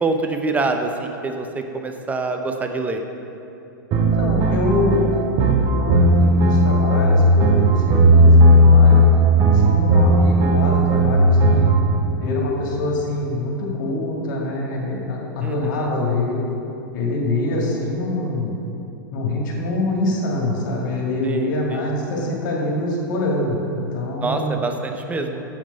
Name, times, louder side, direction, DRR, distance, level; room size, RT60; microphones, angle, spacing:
voice 1, 0.0-3.0 15.4-15.9 21.2-21.9 24.2-25.4, right 3 dB, 15° right, 5 dB, 0.8 m, -25 dB
sound 1, 3.9-11.8, equal, 40° right, 1.0 m, -15 dB
voice 2, 4.0-5.0 5.7-9.0 9.6-11.7 12.2-16.4 16.9-18.5 19.1-24.6, left 2 dB, 65° left, -3 dB, 2.1 m, -24 dB
7.4 x 7.3 x 5.4 m, 2.8 s
hypercardioid pair, 115°, 11 cm